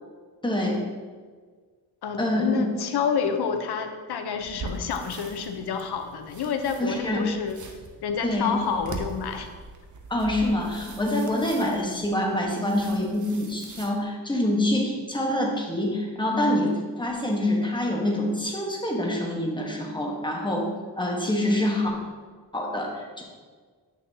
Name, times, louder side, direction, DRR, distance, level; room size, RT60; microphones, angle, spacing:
voice 1, 0.4-0.8 2.2-2.6 6.8-7.2 8.2-8.5 10.1-20.7 21.0-21.9 22.5-23.2, left 1 dB, 10° left, -1 dB, 1.2 m, -26 dB
voice 2, 2.0-7.6 8.0-9.5, left 6 dB, 65° left, 6 dB, 0.8 m, -28 dB
sound 1, 4.4-13.9, right 3 dB, 45° right, 0.8 m, -42 dB
8.4 x 6.2 x 2.8 m, 1.5 s
cardioid pair, 125°, 42 cm